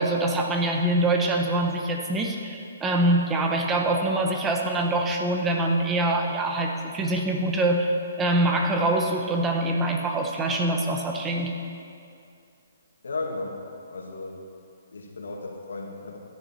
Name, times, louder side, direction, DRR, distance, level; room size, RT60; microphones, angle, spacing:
voice 1, 0.0-11.5, right 1 dB, 15° right, 2 dB, 1.2 m, -24 dB
voice 2, 13.0-13.6 13.9-14.4 14.9-16.2, left 3 dB, 90° left, 0 dB, 2.0 m, -34 dB
14.5 x 10.0 x 4.4 m, 2.4 s
hypercardioid pair, 155°, 0 cm